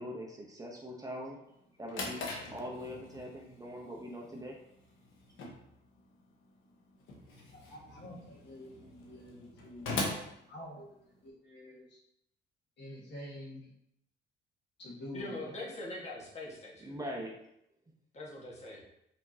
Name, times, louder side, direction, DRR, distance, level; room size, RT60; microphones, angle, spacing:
voice 1, 0.0-1.4 1.8-4.6 16.8-17.4, equal, 15° right, -1 dB, 0.9 m, -42 dB
Drawer open or close, 1.5-11.3, left 2 dB, 80° left, 1.1 m, -42 dB
voice 2, 7.5-10.0 10.5-11.0 11.2-12.0 12.8-13.7 14.8-15.5, left 1 dB, 60° left, -3 dB, 1.7 m, -47 dB
voice 3, 15.1-17.0 18.1-18.8, left 2 dB, 35° left, -4 dB, 1.6 m, -42 dB
5.1 x 3.6 x 2.8 m, 0.78 s
cardioid pair, 90°, 20 cm